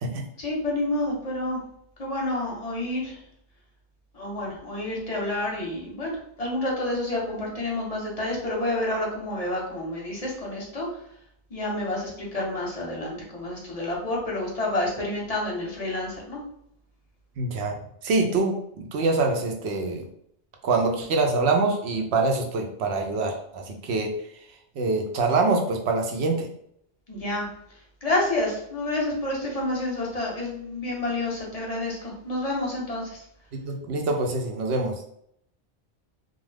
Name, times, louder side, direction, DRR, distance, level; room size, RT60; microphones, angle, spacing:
voice 1, 0.4-1.6 2.0-3.2 4.1-6.1 6.4-10.9 11.5-16.4 27.1-27.5 28.0-33.2, left 1 dB, 40° left, -3 dB, 0.7 m, -29 dB
voice 2, 17.4-17.7 18.0-20.1 20.6-24.1 24.8-26.5 33.6-35.1, right 3 dB, 70° right, 2 dB, 0.8 m, -25 dB
2.4 x 2.2 x 3.2 m, 0.71 s
omnidirectional pair, 1.2 m